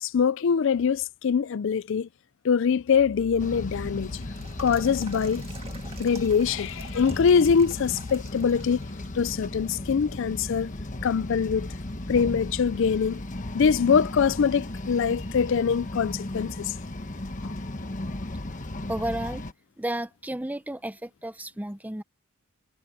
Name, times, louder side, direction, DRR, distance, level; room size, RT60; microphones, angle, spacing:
voice 1, 0.0-2.1 2.4-4.2 4.6-5.4 6.0-8.8 9.1-10.7 11.0-11.7 12.1-13.2 13.5-16.7 17.4-17.5, left 6 dB, 60° left, 0.4 m, -23 dB
sound 1, 3.0-9.1 9.5-9.6 10.3-10.8 11.3-11.4 11.9-13.1 13.4-13.5 16.9-17.0 20.0-20.1, right 4 dB, 25° right, 1.9 m, -49 dB
sound 2, 3.4-19.5, left 1 dB, 35° left, 1.2 m, -36 dB
voice 2, 18.9-19.4 19.8-22.0, right 1 dB, 5° right, 0.6 m, -32 dB
head